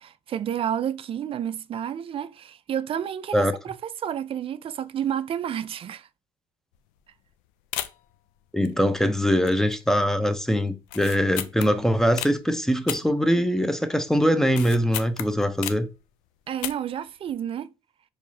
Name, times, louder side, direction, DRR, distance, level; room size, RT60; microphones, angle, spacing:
voice 1, 0.0-6.1 16.5-17.7, right 9 dB, 45° right, 0.4 m, -30 dB
sound 1, 6.7-7.0 7.3-7.4 7.7-8.2 8.6-9.1 9.4-9.9 10.1-10.2 10.8-12.4 12.9-13.8 14.1-16.0 16.5-17.0 17.3-17.4, left 13 dB, 80° left, 0.4 m, -34 dB
voice 2, 8.5-15.9, equal, 5° left, 0.6 m, -22 dB
4.6 x 3.1 x 2.7 m
supercardioid pair, 70°, 13 cm